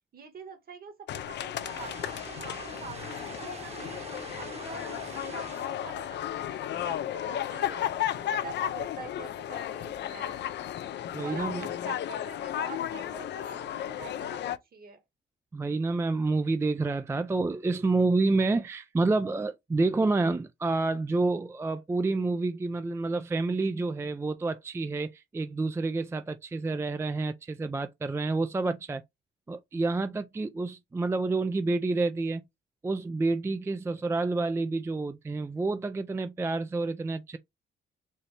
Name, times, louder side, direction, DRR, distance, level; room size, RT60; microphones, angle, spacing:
voice 1, 0.1-4.0 4.4-10.4 11.2-15.0, right 5 dB, 50° right, 1.4 m, -45 dB
sound 1, 1.1-14.6, left 11 dB, 60° left, 0.5 m, -34 dB
sound 2, 1.6-5.8, right 4 dB, 30° right, 1.0 m, -44 dB
voice 2, 11.1-11.6 15.5-29.0 29.5-32.4 32.8-37.4, right 3 dB, 15° right, 0.3 m, -28 dB
4.2 x 2.6 x 3.2 m
cardioid pair, 90°, 20 cm